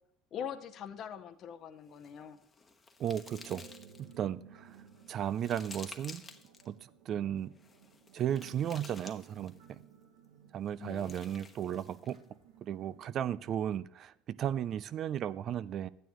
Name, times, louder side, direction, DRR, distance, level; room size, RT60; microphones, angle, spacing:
voice 1, 0.3-2.4 10.8-11.1, left 8 dB, 50° left, 8 dB, 0.8 m, -43 dB
sound 1, 1.9-4.2 4.7-6.7 7.6-9.7 10.7-12.2, left 4 dB, 25° left, 1.1 m, -53 dB
voice 2, 3.0-3.7 4.0-4.8 5.1-6.2 6.7-7.5 8.1-9.8 10.5-12.2 12.6-15.9, right 10 dB, 50° right, 18 dB, 0.4 m, -35 dB
sound 2, 3.0-13.3, right 7 dB, 80° right, 1.3 m, -57 dB
12.5 x 9.2 x 3.1 m, 0.75 s
hypercardioid pair, 80°, 0 cm